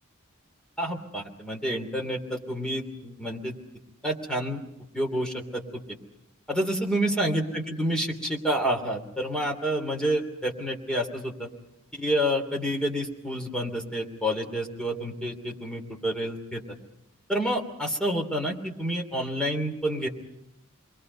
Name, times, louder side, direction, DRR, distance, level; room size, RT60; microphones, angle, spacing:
voice 1, 0.8-3.5 4.0-4.6 4.9-5.6 6.5-11.5 11.9-16.6 17.3-20.1, equal, 5° left, 1 dB, 3.1 m, -28 dB
28.5 x 22.5 x 5.5 m, 0.78 s
head